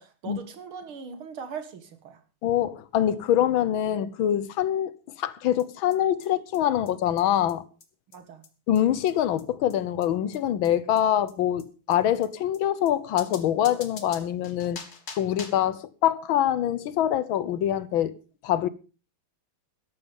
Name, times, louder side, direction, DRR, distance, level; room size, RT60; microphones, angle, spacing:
voice 1, 0.0-2.2 8.1-8.4, right 6 dB, 75° right, 2.6 m, -40 dB
voice 2, 2.4-4.9 5.2-7.6 8.7-14.8 15.1-18.1 18.4-18.7, left 11 dB, 70° left, 1.6 m, -24 dB
sound 1, 5.6-5.7 5.9-6.0 6.2-6.3 6.5-6.6 6.9-7.0 7.2-7.3 7.5-7.6 7.8-7.9 8.1-8.2 8.4-8.5 8.8-8.9 9.1-9.2 9.4-9.5 9.7-9.8 10.0-10.1 10.3-10.4 10.6-10.7 11.0-11.1 11.3-11.4 11.6-11.7 11.9-12.0 12.2-12.3 12.5-12.6 12.9-13.0 13.2-15.7, left 5 dB, 45° left, 2.1 m, -43 dB
13.5 x 11.5 x 5.2 m
omnidirectional pair, 2.4 m